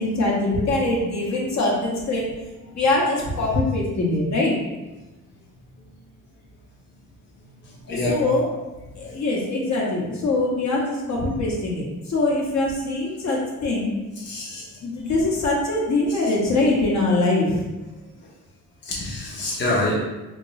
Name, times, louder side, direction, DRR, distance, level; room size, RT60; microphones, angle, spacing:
voice 1, 0.0-2.3 2.7-4.6 7.9-8.5 8.9-13.9 14.8-17.6, left 2 dB, 55° left, -3 dB, 1.0 m, -23 dB
voice 2, 7.9-8.2 14.2-14.6 18.8-19.9, left 2 dB, 35° left, -5 dB, 0.9 m, -25 dB
3.6 x 2.7 x 3.1 m, 1.1 s
cardioid pair, 110°, 33 cm